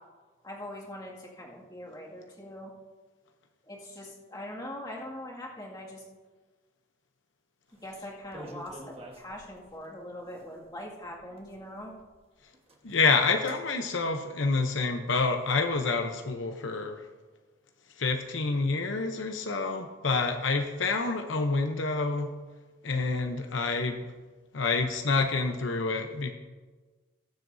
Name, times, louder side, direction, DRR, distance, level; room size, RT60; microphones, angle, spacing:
voice 1, 0.4-2.7 3.6-6.0 7.8-11.9, left 1 dB, 20° left, -4 dB, 2.1 m, -42 dB
sound 1, 7.8-9.9 10.5-10.6 10.9-12.2 12.5-13.0 13.3-13.6, right 1 dB, 30° right, 1.3 m, -48 dB
voice 2, 12.8-17.0 18.0-22.3 22.8-24.0 24.5-26.3, left 4 dB, 80° left, 5 dB, 0.8 m, -28 dB
19.0 x 7.7 x 2.7 m, 1.3 s
head